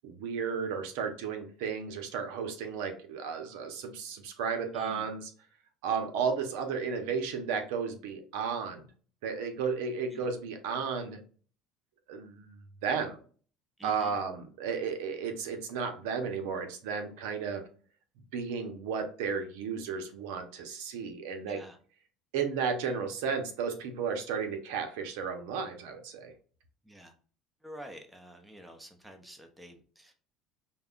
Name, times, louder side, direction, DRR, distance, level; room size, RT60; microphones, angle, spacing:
voice 1, 0.0-5.3 5.8-8.9 9.2-11.2 12.1-13.2 13.8-17.6 18.3-21.6 22.3-26.3, right 6 dB, 85° right, 5 dB, 0.8 m, -33 dB
voice 2, 4.7-5.1 10.1-10.3 13.8-14.2 21.4-21.8 26.8-27.1 27.6-30.1, equal, 5° right, 5 dB, 0.7 m, -49 dB
5.3 x 2.3 x 2.4 m, 0.41 s
supercardioid pair, 120°, 0 cm